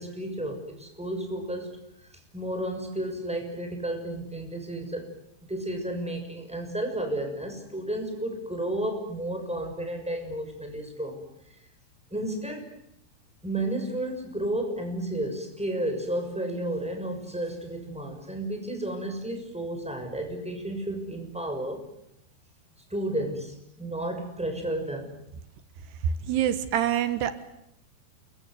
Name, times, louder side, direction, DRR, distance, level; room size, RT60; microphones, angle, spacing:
voice 1, 0.0-1.7 2.3-5.0 5.5-11.2 12.1-12.7 13.4-21.8 22.9-25.1, right 1 dB, ahead, 4 dB, 6.1 m, -32 dB
voice 2, 26.3-27.5, right 11 dB, 80° right, 11 dB, 3.5 m, -26 dB
28.5 x 24.0 x 8.0 m, 0.78 s
omnidirectional pair, 4.7 m